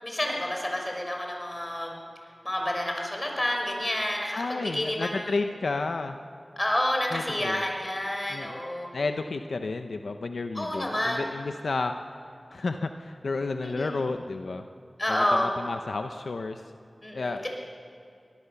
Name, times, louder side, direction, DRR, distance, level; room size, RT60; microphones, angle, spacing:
voice 1, 0.0-1.9 2.4-5.4 6.6-8.9 10.5-11.2 13.6-14.0 15.0-15.5 17.0-17.4, left 1 dB, 30° left, 1 dB, 5.9 m, -29 dB
voice 2, 4.3-6.2 7.1-7.6 8.3-8.6 8.9-12.0 12.5-14.7 15.1-16.6 17.1-17.4, left 3 dB, 85° left, 7 dB, 0.7 m, -31 dB
23.5 x 18.5 x 7.0 m, 2.4 s
cardioid pair, 40°, 0 cm